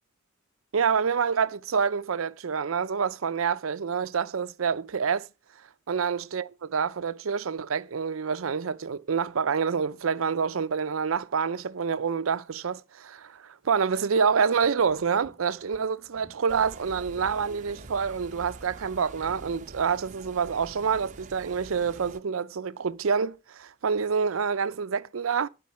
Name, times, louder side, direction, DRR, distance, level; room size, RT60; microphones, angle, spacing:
voice 1, 0.7-5.3 5.9-25.5, right 6 dB, 90° right, 0.6 m, -27 dB
sound 1, 14.2-16.9 17.6-19.7 20.1-21.0, equal, 5° left, 4.3 m, -58 dB
sound 2, 16.5-22.2, right 3 dB, 40° right, 0.7 m, -46 dB
11.5 x 5.2 x 5.7 m
head